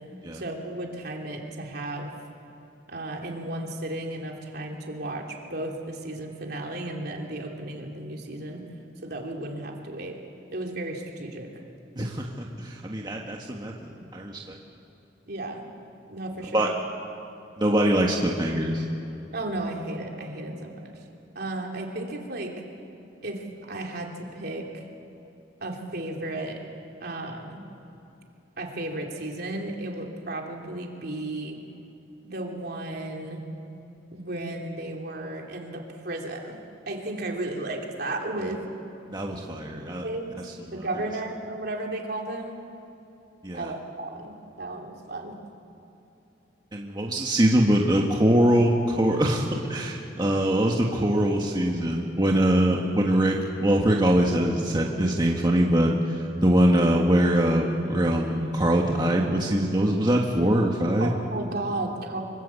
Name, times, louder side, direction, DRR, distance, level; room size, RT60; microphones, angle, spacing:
voice 1, 0.3-2.1 2.9-8.6 9.0-10.2 10.5-11.5 15.3-15.7 16.1-16.8 19.3-21.0 21.3-22.5 23.2-24.9 25.6-26.6 27.0-27.6 28.6-31.6 32.2-33.4 34.1-36.6 36.9-38.6 40.0-40.4 40.7-42.6 43.5-45.4 61.0-62.2, right 2 dB, 55° right, 1 dB, 3.3 m, -34 dB
voice 2, 12.0-14.6 16.5-16.7 17.6-18.8 39.1-40.0 43.4-43.7 46.7-61.1, right 1 dB, 25° right, 0 dB, 1.6 m, -23 dB
25.5 x 22.5 x 8.4 m, 3.0 s
head